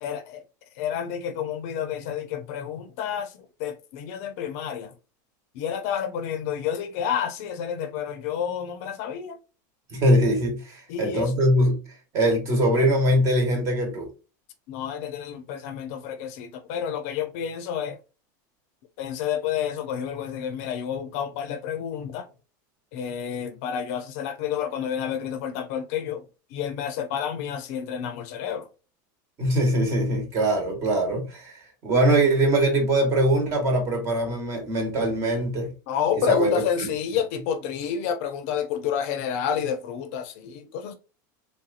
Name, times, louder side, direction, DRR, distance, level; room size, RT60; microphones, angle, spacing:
voice 1, 0.0-0.4 0.8-4.9 5.5-9.4 10.9-11.3 14.7-18.0 19.0-22.3 22.9-26.2 26.5-28.7 35.9-40.9, left 8 dB, 50° left, 0.6 m, -29 dB
voice 2, 9.9-11.8 12.1-14.1 29.4-35.7 36.1-36.9, right 1 dB, 30° right, 1.2 m, -22 dB
3.4 x 2.7 x 2.4 m
supercardioid pair, 175°, 10 cm